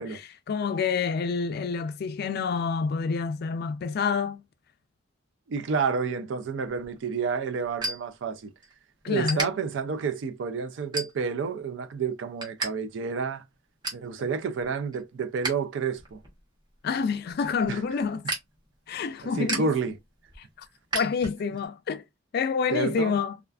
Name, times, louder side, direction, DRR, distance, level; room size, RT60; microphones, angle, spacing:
voice 1, 0.0-4.4 9.0-9.5 16.8-18.3 18.9-19.7 20.9-22.0 22.3-23.4, left 5 dB, 55° left, 0.3 m, -28 dB
voice 2, 5.5-8.5 9.1-13.4 13.9-16.2 17.7-17.8 19.2-20.0 22.7-23.2, right 5 dB, 70° right, 0.4 m, -30 dB
sound 1, 6.7-8.7 9.0-9.5 10.0-10.3 10.8-11.5 11.9-12.7 13.0-13.1 13.5-14.1 14.6-15.5 15.9-21.7, right 2 dB, 25° right, 0.8 m, -35 dB
2.4 x 2.4 x 2.3 m
head